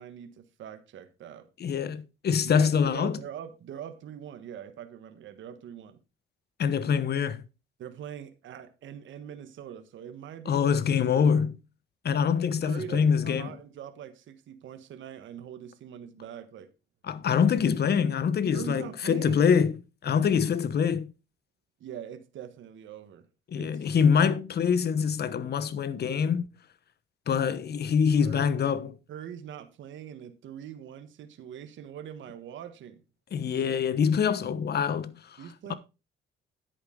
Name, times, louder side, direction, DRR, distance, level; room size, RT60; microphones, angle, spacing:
voice 1, 0.0-1.5 2.4-6.0 7.8-10.8 12.6-16.7 18.5-19.4 21.8-23.3 23.6-23.9 28.2-28.5 29.1-33.0 35.4-35.7, right 9 dB, 70° right, 1.3 m, -42 dB
voice 2, 1.6-3.2 6.6-7.4 10.5-11.6 12.0-13.5 17.1-19.7 20.0-21.1 23.5-26.5 27.3-29.0 33.3-35.4, left 7 dB, 55° left, 1.1 m, -25 dB
10.5 x 8.4 x 3.8 m
cardioid pair, 90°, 20 cm